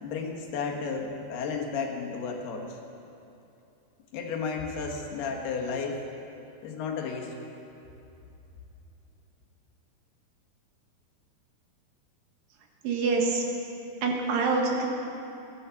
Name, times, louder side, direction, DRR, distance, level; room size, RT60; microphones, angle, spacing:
voice 1, 0.0-2.8 4.1-6.0 6.6-7.3, left 5 dB, 80° left, 1 dB, 3.5 m, -33 dB
voice 2, 12.8-13.4 14.0-14.9, right 4 dB, 70° right, 1 dB, 3.1 m, -25 dB
15.0 x 12.0 x 7.1 m, 2.8 s
omnidirectional pair, 4.6 m